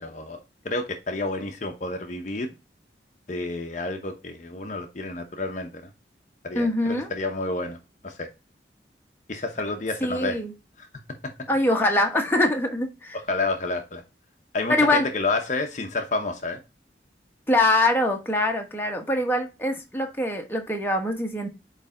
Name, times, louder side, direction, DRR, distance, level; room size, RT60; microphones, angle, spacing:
voice 1, 0.0-0.4 0.6-2.5 3.3-5.9 6.4-7.8 8.0-8.3 9.3-10.4 10.8-10.9 13.3-14.0 14.5-16.6, left 2 dB, 45° left, 5 dB, 0.8 m, -29 dB
voice 2, 6.5-7.1 10.0-10.5 11.5-13.2 14.7-15.1 17.5-21.5, left 1 dB, 10° left, 2 dB, 1.1 m, -23 dB
8.6 x 3.3 x 3.7 m, 0.27 s
head